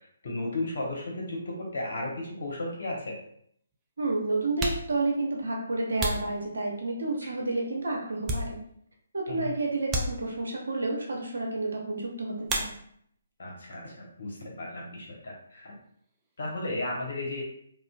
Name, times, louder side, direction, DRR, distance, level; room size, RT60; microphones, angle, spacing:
voice 1, 0.2-3.2 9.3-9.5 13.4-15.7 16.4-17.4, left 2 dB, 65° left, -2 dB, 1.0 m, -34 dB
sound 1, 3.7-3.8 4.4-7.1 7.6-9.0 9.3-9.4 9.9-10.7 12.4-13.2 13.5-14.2 14.4-16.6, right 1 dB, 15° right, 0.4 m, -36 dB
voice 2, 4.0-8.6 9.1-12.7, right 2 dB, 75° right, 0 dB, 0.8 m, -30 dB
2.6 x 2.3 x 2.3 m, 0.67 s
figure-of-eight pair, 140°, 0 cm